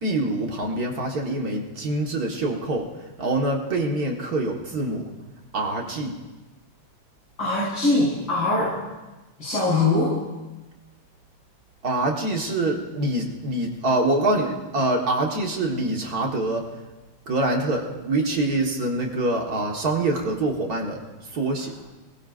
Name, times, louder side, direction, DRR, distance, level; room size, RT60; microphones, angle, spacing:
voice 1, 0.0-5.0 5.5-6.2 11.8-16.7 17.3-21.0 21.3-21.7, right 2 dB, 55° right, 0 dB, 2.0 m, -25 dB
voice 2, 7.4-8.7 9.4-10.1, left 2 dB, 85° left, -11 dB, 6.5 m, -22 dB
28.0 x 20.0 x 2.6 m, 1.1 s
omnidirectional pair, 2.0 m